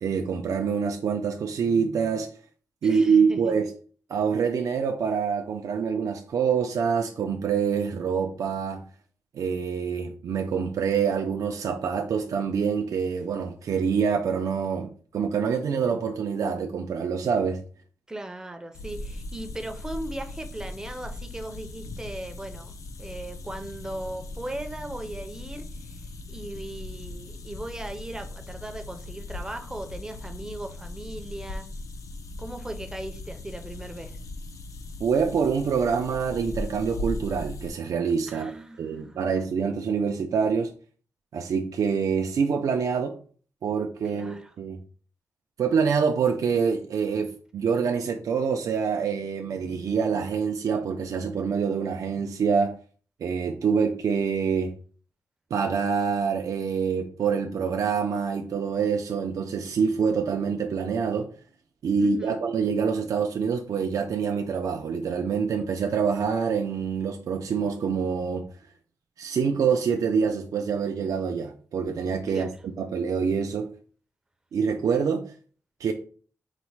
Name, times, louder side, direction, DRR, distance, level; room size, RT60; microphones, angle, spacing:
voice 1, 0.0-2.3 2.8-3.7 4.1-8.8 9.3-17.6 35.0-38.5 38.8-40.7 41.3-43.2 43.6-44.8 45.6-52.8 53.2-54.7 55.5-61.3 61.8-68.5 69.2-72.5 72.8-73.7 74.5-75.3 75.8-75.9, right 6 dB, 65° right, 0.4 m, -26 dB
voice 2, 2.8-3.5 18.1-22.7 23.0-26.0 26.3-31.7 32.4-34.2 38.3-39.2 44.1-44.5 62.0-62.4 72.3-72.6, right 1 dB, 10° right, 0.5 m, -38 dB
sound 1, 18.7-37.7, left 2 dB, 60° left, 0.4 m, -39 dB
4.0 x 2.1 x 4.5 m
wide cardioid pair, 155°, 6 cm